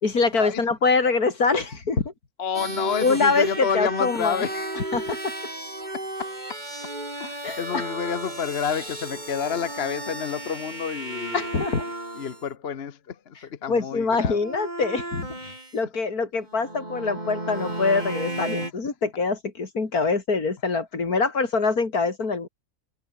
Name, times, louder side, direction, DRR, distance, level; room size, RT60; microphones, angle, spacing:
voice 1, 0.0-2.1 3.0-4.5 4.8-5.3 7.4-7.8 11.3-11.8 13.7-22.5, left 4 dB, 70° left, 3.5 m, -24 dB
voice 2, 2.4-4.9 5.9-6.6 7.2-11.4 12.2-14.4 15.4-15.5, left 7 dB, 45° left, 1.1 m, -30 dB
sound 1, 2.5-12.4 14.2-15.7 16.5-18.7, right 1 dB, 25° right, 4.9 m, -34 dB
omnidirectional pair, 1.7 m